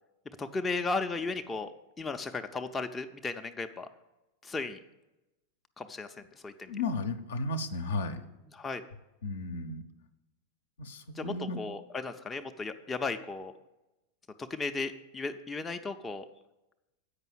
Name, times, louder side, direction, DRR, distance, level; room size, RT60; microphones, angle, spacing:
voice 1, 0.4-1.7 2.0-3.9 4.4-4.8 5.8-6.7 8.6-8.8 11.2-13.5 14.4-16.3, left 3 dB, 15° left, 6 dB, 0.4 m, -35 dB
voice 2, 6.7-8.2 9.2-9.8 10.8-11.6, left 3 dB, 65° left, 8 dB, 0.6 m, -34 dB
8.1 x 5.4 x 7.2 m, 0.97 s
figure-of-eight pair, 90°, 0 cm